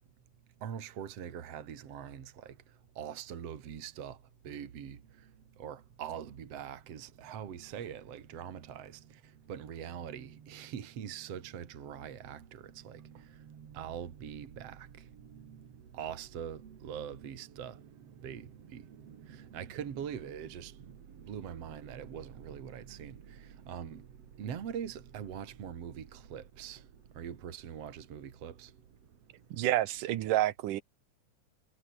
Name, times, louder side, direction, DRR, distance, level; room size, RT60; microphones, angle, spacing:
voice 1, 0.6-2.6 3.0-4.2 4.4-5.3 5.6-28.8, right 8 dB, 50° right, 3.0 m, -43 dB
voice 2, 29.5-30.8, right 14 dB, 80° right, 2.6 m, -29 dB
omnidirectional pair, 3.7 m